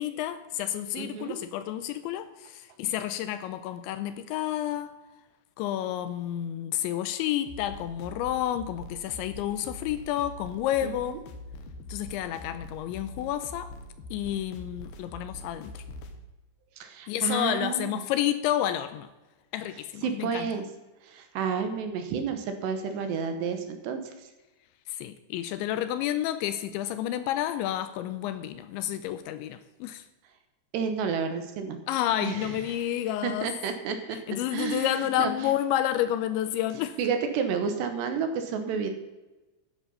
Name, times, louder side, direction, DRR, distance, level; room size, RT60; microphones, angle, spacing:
voice 1, 0.0-5.0 5.6-11.3 11.9-13.7 14.1-15.8 17.1-19.1 19.5-20.5 24.9-30.0 31.9-33.5 34.1-37.0, left 12 dB, 80° left, 2.8 m, -30 dB
voice 2, 1.0-1.3 10.8-11.2 16.8-18.0 20.0-20.6 21.0-24.3 30.7-31.8 32.2-32.5 33.2-34.2 34.5-35.5 37.0-38.9, right 6 dB, 70° right, 3.0 m, -31 dB
sound 1, 7.4-16.2, left 2 dB, 65° left, 2.7 m, -43 dB
14.0 x 10.0 x 5.5 m
omnidirectional pair, 5.6 m